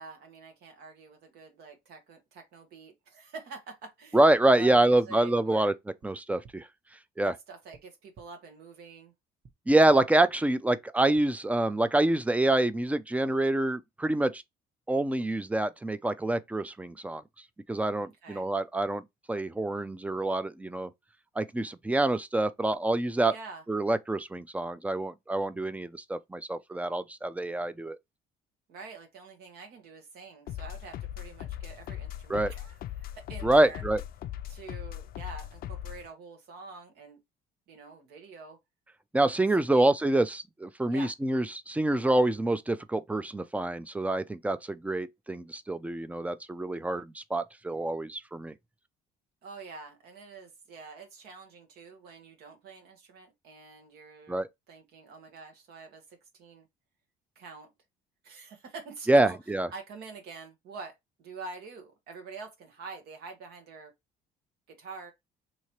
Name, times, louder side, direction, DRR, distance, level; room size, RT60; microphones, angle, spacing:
voice 1, 0.0-4.2 4.6-5.7 7.2-9.1 18.0-18.5 23.3-23.6 28.7-33.8 34.5-37.2 37.7-38.6 39.6-40.0 40.9-41.1 49.4-56.7 57.3-57.7 58.2-59.4 59.7-63.9 64.7-65.1, right 4 dB, 70° right, 1.1 m, -46 dB
voice 2, 4.1-5.7 6.0-6.7 7.2-7.3 9.7-14.4 14.9-17.2 17.7-19.0 19.3-20.9 21.4-23.3 23.7-28.0 32.3-32.5 33.4-34.0 39.1-48.5 54.3-54.5 59.1-59.7, right 1 dB, 10° right, 0.4 m, -26 dB
sound 1, 4.3-4.4 4.7-4.8 6.0-6.1 6.4-6.5 7.7-7.8 8.1-8.2 9.4-9.5 9.9-10.0 11.1-11.2, right 5 dB, 35° right, 1.0 m, -52 dB
sound 2, 30.5-36.1, left 12 dB, 60° left, 0.4 m, -39 dB
3.1 x 2.8 x 4.3 m
cardioid pair, 110°, 17 cm